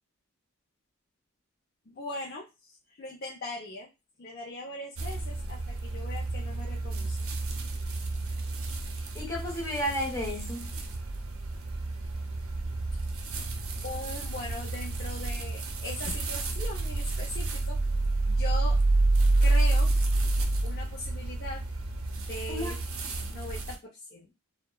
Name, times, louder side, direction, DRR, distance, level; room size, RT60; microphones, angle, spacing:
voice 1, 1.9-2.5 2.9-3.9 4.2-7.3 13.8-17.8 18.2-18.8 19.4-19.9 20.6-21.6 22.1-22.8 23.3-24.3, left 2 dB, 45° left, 0.5 m, -40 dB
sound 1, 5.0-23.7, right 2 dB, 75° right, 0.5 m, -29 dB
voice 2, 9.1-10.7 22.5-22.7, equal, 15° left, 0.8 m, -32 dB
2.7 x 2.1 x 2.2 m
head